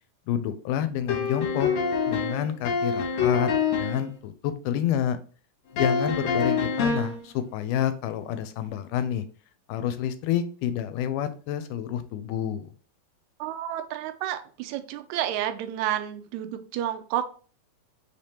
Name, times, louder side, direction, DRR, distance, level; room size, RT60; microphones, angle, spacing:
voice 1, 0.3-1.7 2.1-5.2 5.7-9.2 9.7-12.7, left 10 dB, 85° left, 11 dB, 2.1 m, -28 dB
sound 1, 1.1-4.1 5.8-7.2, left 5 dB, 65° left, 2.1 m, -26 dB
voice 2, 13.4-17.3, right 11 dB, 80° right, 8 dB, 1.8 m, -30 dB
5.4 x 3.3 x 2.8 m, 0.40 s
omnidirectional pair, 3.6 m